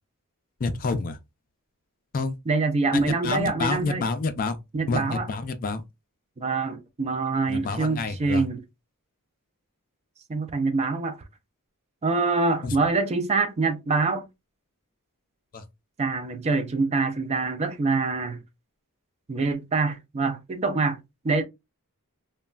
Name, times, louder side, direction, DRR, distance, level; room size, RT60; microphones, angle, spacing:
voice 1, 0.6-1.2 2.1-2.3 2.9-4.6 4.9-5.8 7.5-8.4 12.6-12.7 15.5-15.6, left 3 dB, 40° left, 0.4 m, -28 dB
voice 2, 2.5-4.1 4.7-5.3 6.4-8.6 10.3-11.2 12.0-14.3 16.0-18.4 19.3-21.0 21.2-21.4, right 3 dB, 30° right, 0.4 m, -25 dB
3.1 x 2.2 x 2.3 m
head